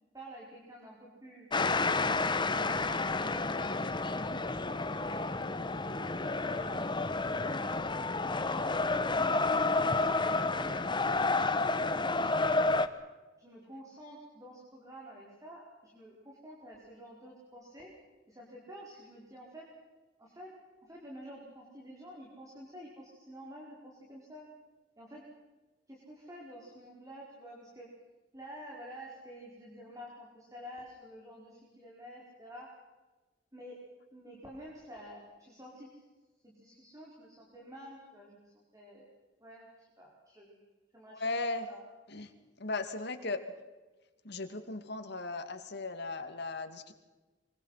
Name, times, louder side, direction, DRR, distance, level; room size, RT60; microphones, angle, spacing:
voice 1, 0.1-1.5 2.2-3.1 3.5-5.4 5.8-7.0 7.4-10.8 11.1-12.5 13.4-17.9 18.3-19.7 20.2-20.5 20.8-24.5 25.0-25.2 25.9-27.9 28.3-32.7 33.5-33.8 34.1-35.9 36.4-39.1 39.4-40.6 40.9-41.9, equal, 20° right, -3 dB, 5.2 m, -49 dB
sound 1, 1.5-12.9, left 3 dB, 25° left, 1.2 m, -30 dB
voice 2, 41.1-41.7 42.1-42.3 42.6-43.4 44.2-46.9, left 3 dB, 60° left, 7 dB, 2.5 m, -37 dB
25.5 x 24.0 x 5.9 m, 1.2 s
head